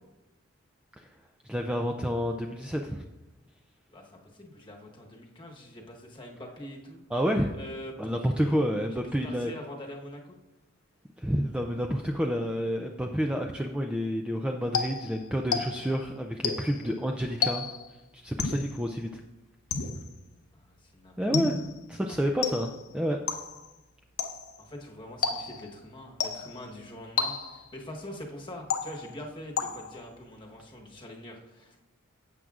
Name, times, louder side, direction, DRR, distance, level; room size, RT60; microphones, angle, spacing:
voice 1, 1.4-3.0 7.1-7.5 8.0-9.5 11.2-17.7 18.1-19.1 21.2-21.6 21.9-23.2, equal, 5° right, 3 dB, 0.3 m, -29 dB
voice 2, 3.9-7.0 7.5-10.4 20.5-21.1 24.6-31.8, left 1 dB, 20° left, 0 dB, 1.1 m, -44 dB
sound 1, 14.7-16.0 16.4-16.9 17.4-17.9 18.4-18.8 19.7-20.2 21.3-21.8 22.4-22.9 23.3-23.7 24.2-24.6 25.2-25.7 26.2-26.6 27.2-27.7 28.7-29.2 29.6-30.1, left 5 dB, 90° left, 0.8 m, -31 dB
12.0 x 7.8 x 2.4 m, 1.0 s
head